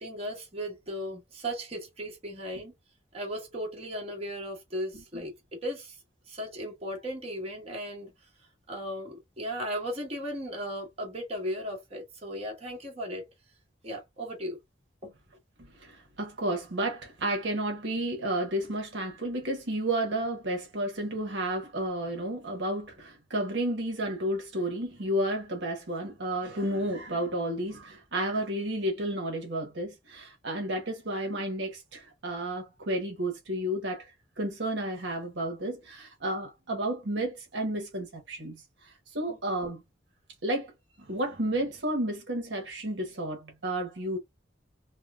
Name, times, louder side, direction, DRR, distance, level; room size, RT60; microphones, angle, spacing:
voice 1, 0.0-2.7 3.1-6.0 6.3-8.1 8.7-13.3 13.8-14.6 15.0-15.2 39.3-39.4, equal, 35° right, 1.4 m, -36 dB
voice 2, 15.6-34.1 34.4-39.8 40.4-40.7 41.0-44.2, right 1 dB, 65° right, 1.1 m, -32 dB
3.5 x 2.1 x 2.4 m
head